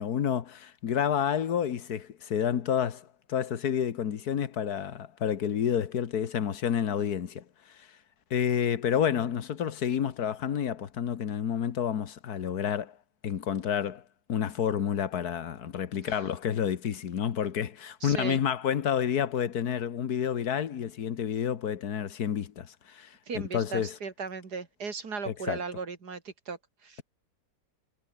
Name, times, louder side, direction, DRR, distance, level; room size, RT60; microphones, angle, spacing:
voice 1, 0.0-7.4 8.3-12.9 13.2-14.0 14.3-23.9 25.3-25.6, left 8 dB, 70° left, 1.8 m, -29 dB
voice 2, 16.0-16.3 18.0-18.4 23.3-27.0, right 5 dB, 80° right, 3.2 m, -37 dB
omnidirectional pair, 1.7 m